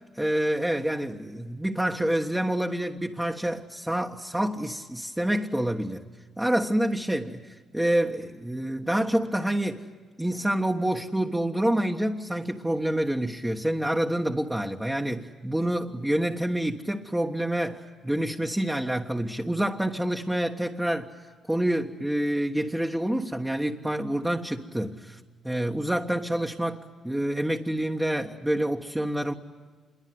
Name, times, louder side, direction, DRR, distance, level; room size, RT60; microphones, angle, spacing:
voice 1, 0.1-6.0 6.4-9.9 10.2-21.1 21.5-29.3, right 1 dB, 10° right, 1.4 m, -27 dB
27.0 x 23.0 x 9.4 m
cardioid pair, 90°, 0 cm